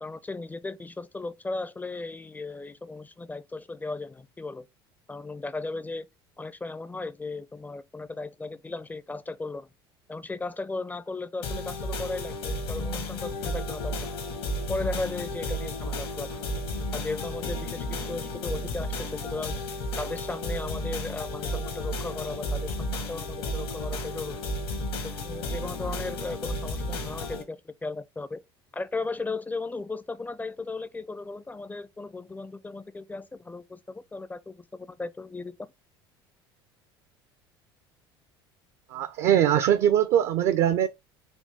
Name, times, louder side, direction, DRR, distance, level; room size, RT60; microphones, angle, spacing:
voice 1, 0.0-4.6 5.1-6.1 6.4-9.7 10.1-14.1 14.7-16.4 16.9-19.6 20.0-24.4 25.0-28.4 28.7-35.7, left 3 dB, 15° left, 0.4 m, -36 dB
sound 1, 11.4-27.4, left 1 dB, 75° left, 1.3 m, -33 dB
voice 2, 38.9-40.9, right 10 dB, 55° right, 0.5 m, -22 dB
4.4 x 2.7 x 3.5 m
hypercardioid pair, 70°, 13 cm